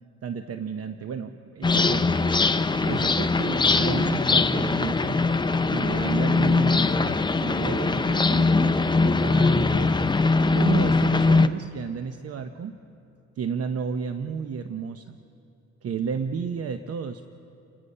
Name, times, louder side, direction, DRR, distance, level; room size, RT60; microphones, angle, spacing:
voice 1, 0.2-2.2 2.8-5.3 5.7-10.1 10.5-12.7 13.4-15.2 15.8-17.2, right 6 dB, 50° right, 8 dB, 0.9 m, -32 dB
sound 1, 1.6-11.5, left 3 dB, 15° left, 0.7 m, -21 dB
28.5 x 20.5 x 5.6 m, 2.6 s
cardioid pair, 90°, 30 cm